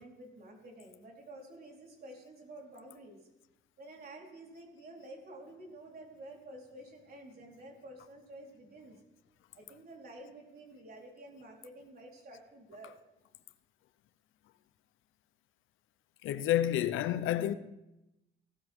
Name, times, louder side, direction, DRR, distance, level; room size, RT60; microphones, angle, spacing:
voice 1, 0.0-3.3 3.8-9.0 9.5-12.9, right 1 dB, 50° right, 4.2 m, -50 dB
voice 2, 16.2-17.5, left 12 dB, 85° left, 0.8 m, -29 dB
17.5 x 13.0 x 3.7 m
cardioid pair, 90°, 20 cm